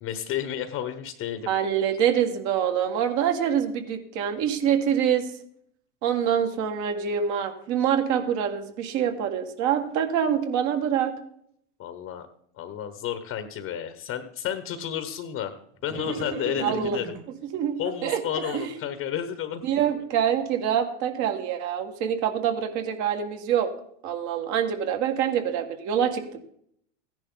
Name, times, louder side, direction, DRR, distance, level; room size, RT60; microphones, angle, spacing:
voice 1, 0.0-1.5 11.8-12.3 12.6-17.2 17.8-19.6, left 10 dB, 40° left, 10 dB, 1.2 m, -32 dB
voice 2, 1.5-5.3 6.0-11.2 16.6-17.0 17.5-18.2 18.5-18.7 19.6-23.7 24.0-26.4, right 8 dB, 50° right, 6 dB, 2.0 m, -25 dB
sound 1, 15.9-17.2 17.8-18.7, right 3 dB, 30° right, 1.9 m, -35 dB
15.0 x 10.5 x 3.9 m, 0.69 s
supercardioid pair, 120°, 37 cm